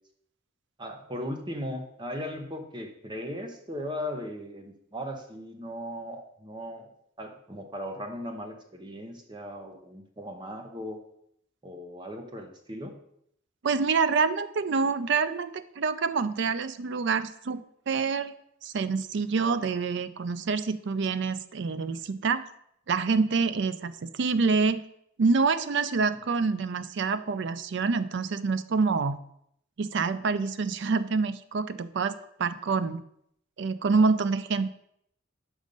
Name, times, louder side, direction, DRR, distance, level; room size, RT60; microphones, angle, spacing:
voice 1, 0.8-6.9 7.2-11.0 11.6-13.0, equal, 20° right, 4 dB, 0.7 m, -37 dB
voice 2, 13.6-18.3 18.6-22.5 22.9-24.8 25.2-29.2 29.8-32.1 32.4-33.0 33.6-34.7, right 4 dB, 55° right, 13 dB, 0.4 m, -26 dB
6.3 x 5.3 x 5.3 m, 0.72 s
head